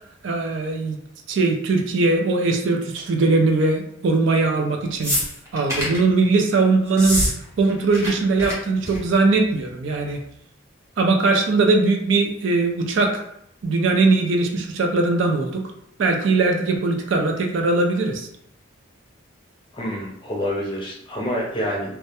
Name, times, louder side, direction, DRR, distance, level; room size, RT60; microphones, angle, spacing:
voice 1, 0.2-1.0 1.3-5.2 5.5-7.2 7.6-10.2 11.0-13.2 13.6-15.6 16.0-18.3, right 3 dB, 65° right, 3 dB, 0.3 m, -20 dB
sound 1, 5.0-6.0 6.9-7.3 7.6-8.1 8.4-8.5 8.8-9.1 10.1-10.2, equal, 15° right, 0.7 m, -24 dB
voice 2, 19.7-22.0, equal, 25° left, -3 dB, 0.5 m, -27 dB
2.2 x 2.1 x 2.8 m, 0.72 s
head